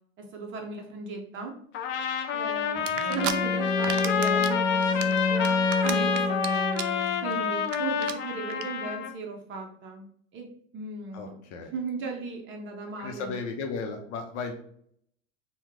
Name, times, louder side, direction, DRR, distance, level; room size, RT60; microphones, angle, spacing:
voice 1, 0.2-1.6 2.3-6.9 7.2-10.1 10.3-11.4 11.7-13.3, right 4 dB, 35° right, 2 dB, 0.6 m, -37 dB
Trumpet, 1.7-9.1, left 7 dB, 35° left, 0.4 m, -29 dB
sound 1, 2.9-3.3 3.7-4.5 4.8-6.5 6.7-7.0 7.3-7.4 7.6-7.8 8.0-8.1 8.5-8.6, right 10 dB, 85° right, 0.5 m, -32 dB
Bowed string instrument, 3.0-7.4, left 3 dB, 5° right, 0.9 m, -28 dB
voice 2, 11.1-11.7 13.0-14.5, left 4 dB, 70° left, 4 dB, 0.7 m, -35 dB
3.0 x 2.2 x 3.5 m, 0.65 s
hypercardioid pair, 110°, 37 cm